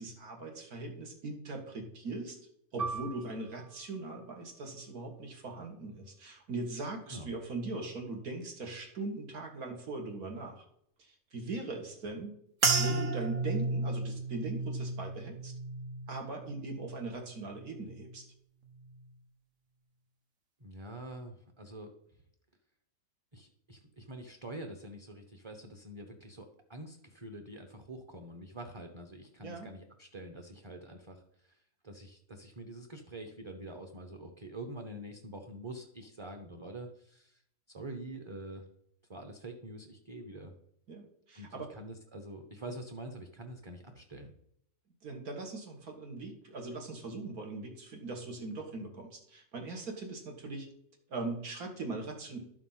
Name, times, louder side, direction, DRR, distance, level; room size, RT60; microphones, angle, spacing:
voice 1, 0.0-2.4 2.7-10.6 11.0-12.3 12.8-15.5 16.1-18.3 29.4-29.7 40.9-41.7 45.0-50.7 51.1-52.4, right 3 dB, 85° right, 2 dB, 2.3 m, -40 dB
Piano, 2.8-7.8 8.2-8.3 9.1-9.5, right 4 dB, 40° right, 1.2 m, -44 dB
sound 1, 12.6-17.2 17.5-18.1 18.7-19.0, right 3 dB, 65° right, 1.6 m, -33 dB
voice 2, 20.6-21.9 23.3-31.6 31.8-37.4 37.7-38.6 39.1-40.5 41.3-44.3, right 1 dB, 25° right, 5 dB, 0.7 m, -46 dB
12.0 x 4.9 x 5.7 m, 0.71 s
omnidirectional pair, 1.5 m